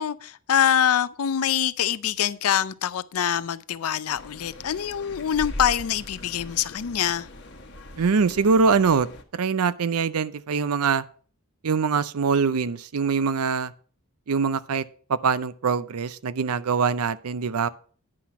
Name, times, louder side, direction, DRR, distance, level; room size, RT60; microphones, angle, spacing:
voice 1, 0.0-7.3, left 9 dB, 80° left, 0.5 m, -24 dB
sound 1, 4.1-9.2, left 1 dB, 50° left, 1.1 m, -40 dB
voice 2, 8.0-11.0 11.6-13.7 14.3-14.8 15.1-17.7, right 5 dB, 85° right, 0.6 m, -23 dB
9.9 x 5.8 x 5.8 m
head